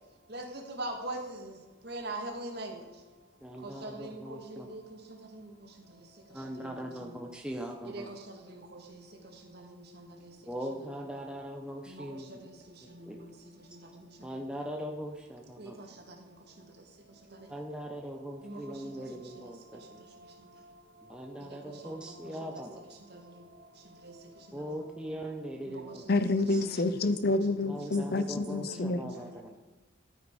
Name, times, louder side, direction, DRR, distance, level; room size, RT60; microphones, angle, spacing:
voice 1, 0.3-1.5 1.8-2.8 3.6-4.8 5.3-5.5 6.6-6.8 7.9-8.2 8.5-9.0 9.5-10.3 11.9-12.5 13.0-13.2 13.7-13.8 15.6-15.7 18.4-18.6 21.4-21.6 21.8-22.2 22.4-22.6 23.1-23.2 24.0-24.1 25.7-25.9 26.6-27.1 28.6-28.9 29.2-29.3, right 1 dB, 50° right, 2 dB, 2.0 m, -42 dB
voice 2, 3.4-4.7 6.3-8.1 10.5-12.3 13.0-13.2 14.2-15.8 17.5-20.0 21.0-22.8 24.5-26.0 26.5-26.6 27.7-29.6, equal, 5° right, 1 dB, 0.7 m, -40 dB
voice 3, 26.1-29.1, left 2 dB, 50° left, 13 dB, 0.6 m, -28 dB
12.5 x 9.4 x 4.8 m, 1.2 s
head